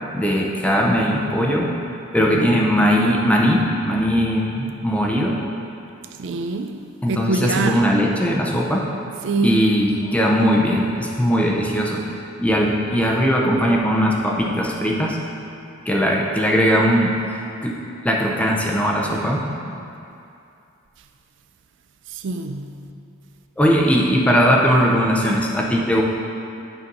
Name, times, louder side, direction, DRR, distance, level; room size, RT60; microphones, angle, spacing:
voice 1, 0.1-1.7 2.1-5.4 7.0-8.8 9.4-12.0 12.4-15.2 15.9-17.1 17.6-17.8 18.0-19.5 23.6-26.0, equal, 5° left, 0.7 m, -19 dB
voice 2, 6.2-6.8 7.1-7.8 9.2-9.6 22.1-22.8, right 3 dB, 60° right, 0.4 m, -24 dB
9.0 x 4.3 x 5.3 m
head